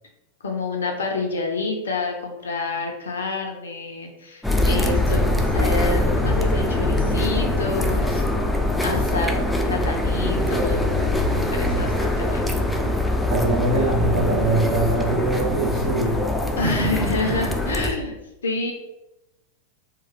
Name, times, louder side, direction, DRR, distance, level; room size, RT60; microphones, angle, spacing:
voice 1, 0.4-5.2 5.5-8.2 8.8-12.4 16.6-18.1 18.4-18.7, left 3 dB, 70° left, 2 dB, 0.4 m, -28 dB
sound 1, 4.4-17.9, left 1 dB, 5° left, 0.3 m, -23 dB
voice 2, 13.3-16.2 16.6-17.1, right 2 dB, 55° right, -5 dB, 0.6 m, -23 dB
2.9 x 2.2 x 2.9 m, 0.95 s
figure-of-eight pair, 90°, 0 cm